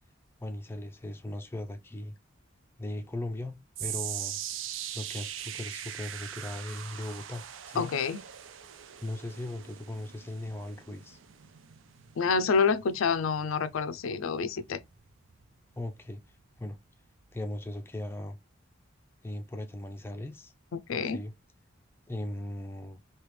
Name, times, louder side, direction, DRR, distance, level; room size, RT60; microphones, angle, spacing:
voice 1, 0.4-2.1 2.8-4.4 4.9-7.9 9.0-11.2 15.8-16.8 17.3-18.4 19.2-20.5 21.0-21.3 22.1-23.0, left 1 dB, 10° left, 0.4 m, -38 dB
sound 1, 3.8-16.1 16.4-16.8 17.4-17.5, right 10 dB, 75° right, 0.5 m, -42 dB
voice 2, 7.8-8.2 12.2-14.8 20.7-21.2, left 5 dB, 85° left, 0.4 m, -28 dB
3.3 x 2.8 x 3.1 m
head